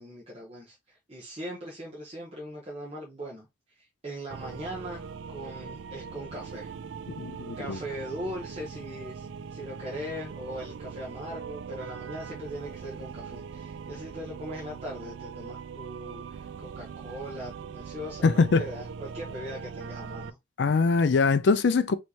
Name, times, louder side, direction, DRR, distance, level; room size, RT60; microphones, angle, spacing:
voice 1, 0.0-3.5 3.7-5.1 5.3-6.7 7.6-20.4, equal, 35° right, 1.1 m, -40 dB
sound 1, 4.3-20.3, right 6 dB, 75° right, 0.3 m, -41 dB
voice 2, 7.2-7.8 18.2-18.6 20.6-21.9, left 4 dB, 65° left, 0.4 m, -22 dB
4.4 x 3.2 x 2.8 m
head